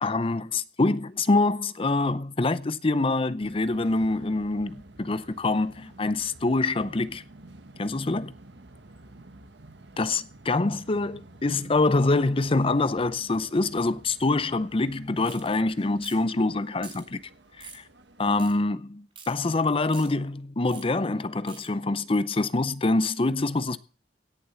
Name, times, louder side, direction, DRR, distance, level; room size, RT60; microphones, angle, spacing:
voice 1, 0.0-7.2 7.8-8.3 10.0-17.2 17.6-17.8 18.2-23.8, left 2 dB, 30° left, 0.6 m, -25 dB
sound 1, 3.4-18.4, right 2 dB, 80° right, 1.4 m, -51 dB
Ratchet Wrench Avg Speed Multiple, 15.2-15.5 16.0-16.3 16.8-17.0 17.6-17.8 18.4-18.5 19.2-19.3 19.9-20.1 20.7-20.9 21.5-21.7, right 6 dB, 30° right, 4.2 m, -45 dB
17.0 x 7.3 x 6.9 m
head